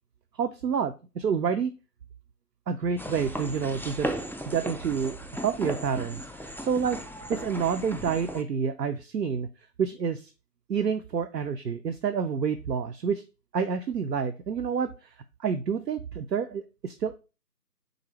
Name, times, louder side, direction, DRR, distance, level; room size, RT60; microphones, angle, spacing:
voice 1, 0.3-1.7 2.7-4.1 4.5-7.0 7.3-9.5 9.8-10.3 10.7-13.2 13.5-17.2, right 6 dB, 80° right, 9 dB, 0.5 m, -28 dB
sound 1, 3.0-8.4, equal, 5° left, 0.3 m, -36 dB
4.0 x 3.9 x 2.9 m, 0.32 s
figure-of-eight pair, 180°, 49 cm